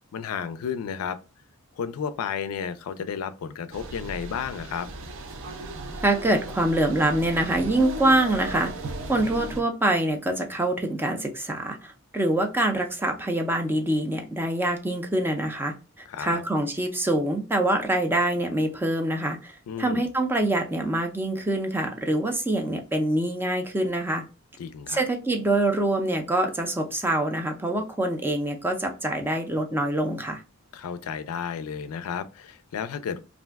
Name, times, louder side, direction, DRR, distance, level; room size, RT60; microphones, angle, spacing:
voice 1, 0.1-1.2 1.8-4.9 16.1-16.4 19.7-20.0 24.6-25.0 30.7-33.2, left 7 dB, 80° left, 0.3 m, -32 dB
sound 1, 3.7-9.6, right 2 dB, 60° right, 0.5 m, -36 dB
voice 2, 6.0-8.7 9.1-15.7 16.2-19.5 19.8-24.2 24.9-30.4, right 1 dB, 10° right, 0.4 m, -25 dB
2.5 x 2.2 x 3.3 m
head